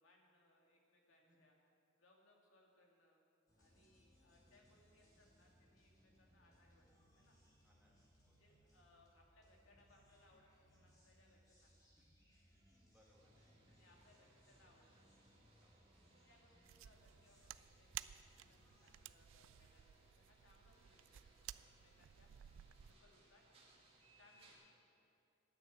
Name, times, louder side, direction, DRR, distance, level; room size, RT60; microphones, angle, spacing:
voice 1, 0.0-1.5 2.0-3.2 3.6-7.4 8.3-11.8 13.7-15.1 16.3-22.3 22.8-23.4 24.1-24.7, left 2 dB, 85° left, -1 dB, 2.4 m, -72 dB
sound 1, 3.5-19.0, equal, 20° left, 2.8 m, -71 dB
voice 2, 7.6-7.9 8.3-8.4 12.0-13.5 15.6-15.8 20.7-20.9, equal, 5° right, -3 dB, 1.9 m, -76 dB
sound 2, 13.1-24.5, right 2 dB, 30° right, 2.1 m, -71 dB
sound 3, 16.6-23.0, right 12 dB, 80° right, 0.3 m, -55 dB
10.5 x 9.4 x 8.4 m, 2.5 s
head